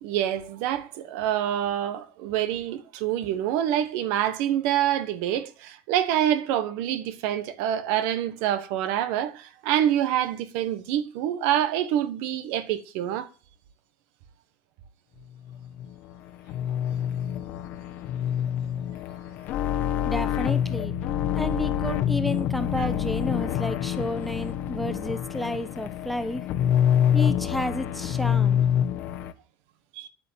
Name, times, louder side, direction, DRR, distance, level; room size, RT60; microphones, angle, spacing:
voice 1, 0.0-13.3 22.8-22.9 29.9-30.1, right 11 dB, 60° right, 1.5 m, -26 dB
sound 1, 15.5-29.3, left 9 dB, 45° left, 1.2 m, -26 dB
voice 2, 20.0-20.9 21.3-26.4 27.1-28.6, left 1 dB, ahead, 1.2 m, -31 dB
10.0 x 9.8 x 7.6 m
cardioid pair, 155°, 4 cm